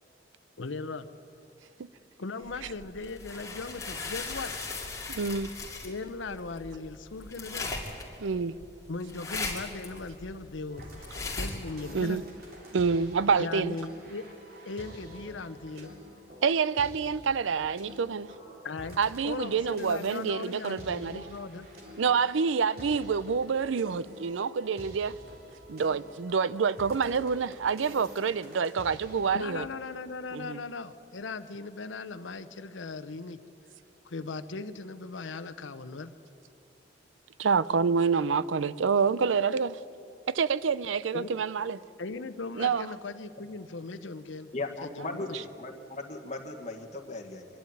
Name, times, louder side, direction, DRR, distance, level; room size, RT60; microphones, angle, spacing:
voice 1, 0.6-1.1 2.2-4.5 5.8-7.7 8.9-12.2 13.4-14.2 14.7-15.9 18.6-19.0 19.2-21.7 29.3-33.4 34.0-36.1 41.1-41.3 42.0-44.5 44.8-45.4, left 3 dB, 85° left, 0.8 m, -38 dB
sound 1, 2.5-11.7, left 3 dB, 15° left, 2.4 m, -38 dB
voice 2, 5.1-5.5 8.2-8.5 11.9-12.2 12.7-13.8 16.4-18.3 19.0-21.2 22.0-25.1 25.7-29.6 30.3-30.6 37.4-39.8 40.3-41.8 42.6-42.9, right 5 dB, 90° right, 0.5 m, -27 dB
sound 2, 10.7-29.4, equal, 50° right, 3.4 m, -48 dB
voice 3, 44.5-47.5, left 2 dB, 40° left, 1.6 m, -37 dB
24.5 x 11.5 x 9.3 m
head